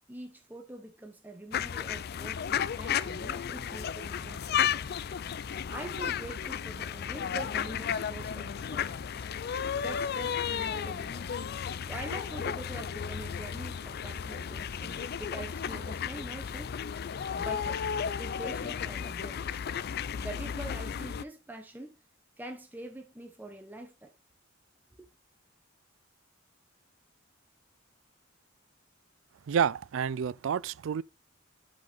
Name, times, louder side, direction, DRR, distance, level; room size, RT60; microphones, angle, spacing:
voice 1, 0.1-4.8 5.7-9.2 9.7-11.3 11.9-16.7 17.3-17.8 18.1-19.6 20.2-22.0 22.4-24.1, right 1 dB, 10° right, 0.9 m, -44 dB
sound 1, 1.5-21.2, left 8 dB, 55° left, 0.4 m, -34 dB
sound 2, 3.6-15.2, right 1 dB, 40° right, 3.4 m, -56 dB
voice 2, 29.5-31.0, right 7 dB, 75° right, 0.4 m, -29 dB
10.5 x 5.3 x 3.9 m
head